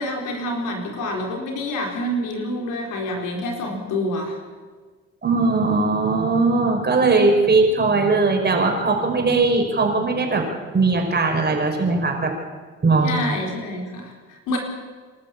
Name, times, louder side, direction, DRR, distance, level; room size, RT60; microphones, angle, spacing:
voice 1, 0.0-4.4 13.0-14.6, left 1 dB, 90° left, 1 dB, 4.4 m, -27 dB
voice 2, 5.2-10.5 10.7-12.3 12.8-13.1, right 3 dB, 35° right, 2 dB, 5.1 m, -19 dB
27.0 x 13.0 x 8.5 m, 1.5 s
cardioid pair, 90°, 30 cm